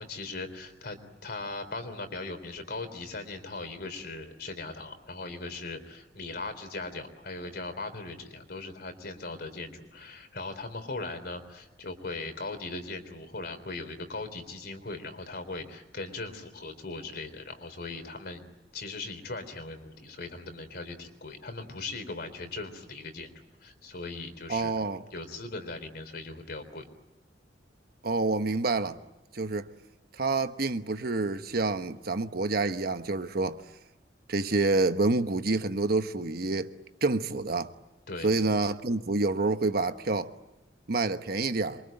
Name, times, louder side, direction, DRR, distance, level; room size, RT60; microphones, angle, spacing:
voice 1, 0.0-18.5 18.7-23.3 23.6-24.8 25.1-26.9 38.1-38.3, left 3 dB, 60° left, 3.7 m, -39 dB
voice 2, 24.5-25.0 28.0-29.0 29.3-29.7 30.1-33.6 34.3-36.7 37.0-37.7 38.2-40.3 40.9-41.8, right 3 dB, 60° right, 1.1 m, -28 dB
27.0 x 24.0 x 9.0 m
head